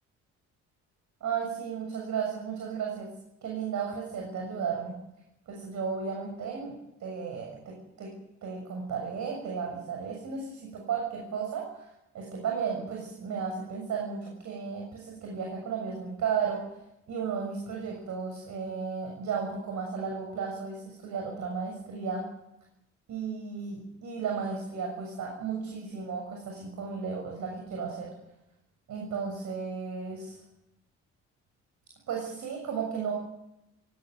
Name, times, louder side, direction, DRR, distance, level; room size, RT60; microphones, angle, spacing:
voice 1, 1.2-3.1 3.4-4.9 5.5-6.7 7.0-8.1 8.4-16.8 17.1-22.2 23.1-28.1 28.9-30.4 32.1-33.1, right 6 dB, 70° right, 0 dB, 7.0 m, -34 dB
19.5 x 17.0 x 9.7 m, 0.86 s
cardioid pair, 90°, 30 cm